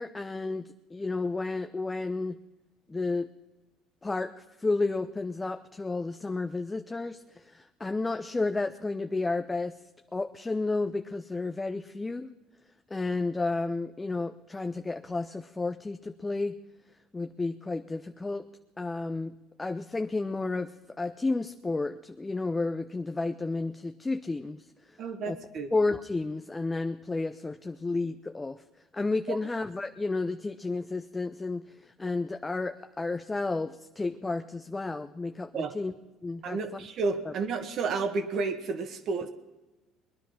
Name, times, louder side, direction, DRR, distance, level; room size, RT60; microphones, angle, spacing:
voice 1, 0.0-2.4 2.9-3.3 4.0-9.8 10.1-12.3 12.9-16.6 17.1-18.5 18.8-19.3 19.6-25.4 25.7-28.6 28.9-35.9 36.2-36.8 37.3-37.4, left 3 dB, 15° left, 9 dB, 0.6 m, -32 dB
voice 2, 25.0-25.7 29.3-29.4 35.5-35.8 36.4-39.3, right 4 dB, 55° right, 7 dB, 1.8 m, -31 dB
21.0 x 10.0 x 5.8 m, 1.1 s
supercardioid pair, 100°, 0 cm